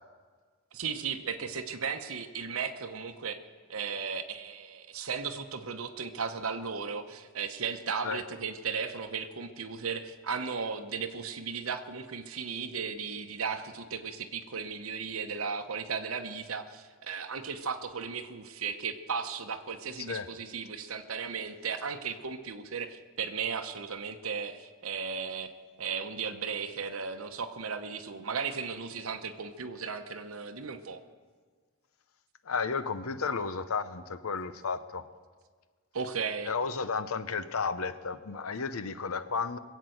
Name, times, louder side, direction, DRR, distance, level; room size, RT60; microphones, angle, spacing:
voice 1, 0.7-3.4 3.7-25.5 25.8-31.0 35.9-36.5, right 6 dB, 80° right, 0.9 m, -36 dB
voice 2, 20.0-20.3 32.4-35.1 36.4-39.6, left 5 dB, 85° left, 0.8 m, -33 dB
21.0 x 8.3 x 7.8 m
head